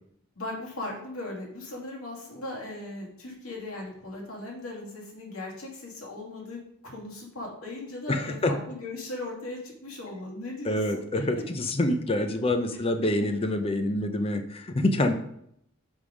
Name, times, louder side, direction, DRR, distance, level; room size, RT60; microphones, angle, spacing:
voice 1, 0.4-11.0 11.4-11.5, left 2 dB, 90° left, -2 dB, 2.2 m, -38 dB
voice 2, 8.1-8.5 10.6-15.1, left 1 dB, 30° left, 7 dB, 0.6 m, -26 dB
5.4 x 5.1 x 5.0 m, 0.71 s
head